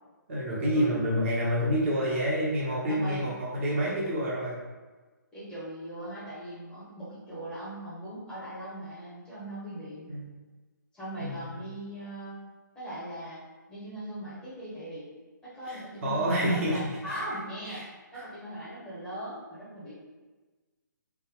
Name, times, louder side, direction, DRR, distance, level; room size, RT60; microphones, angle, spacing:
voice 1, 0.3-4.6 10.1-10.2 11.2-11.5 15.7-17.2 17.8-17.9 18.1-18.2, equal, 40° right, -6 dB, 1.1 m, -28 dB
voice 2, 2.9-3.3 5.3-10.1 10.9-12.4 12.7-13.4 13.7-15.1 15.4-19.9, right 1 dB, 10° left, -11 dB, 1.1 m, -39 dB
3.5 x 2.1 x 3.6 m, 1.3 s
figure-of-eight pair, 135°, 11 cm